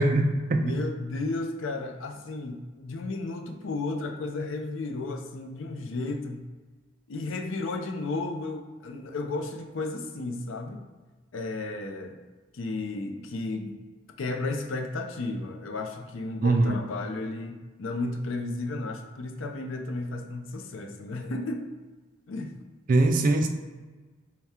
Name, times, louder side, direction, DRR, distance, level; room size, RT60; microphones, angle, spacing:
voice 1, 0.0-0.7 16.4-16.8 22.9-23.5, right 2 dB, 40° right, 5 dB, 0.3 m, -22 dB
voice 2, 0.5-6.4 7.1-10.8 11.3-12.2 12.5-13.8 14.2-21.7 22.3-22.6, left 2 dB, 75° left, 3 dB, 0.5 m, -33 dB
3.5 x 2.2 x 4.2 m, 1.3 s
head